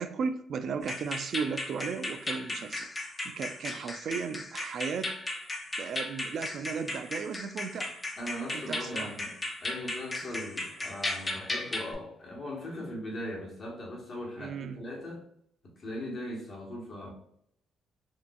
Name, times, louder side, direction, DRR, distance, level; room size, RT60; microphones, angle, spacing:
voice 1, 0.0-5.1 5.8-8.0 8.5-9.1 14.4-14.8, right 6 dB, 60° right, 10 dB, 0.4 m, -35 dB
sound 1, 0.8-11.9, left 2 dB, 20° left, 0.7 m, -36 dB
voice 2, 8.2-9.3 9.6-15.2 15.8-17.1, left 1 dB, 50° left, -2 dB, 1.4 m, -39 dB
4.4 x 2.6 x 2.3 m, 0.72 s
cardioid pair, 90°, 0 cm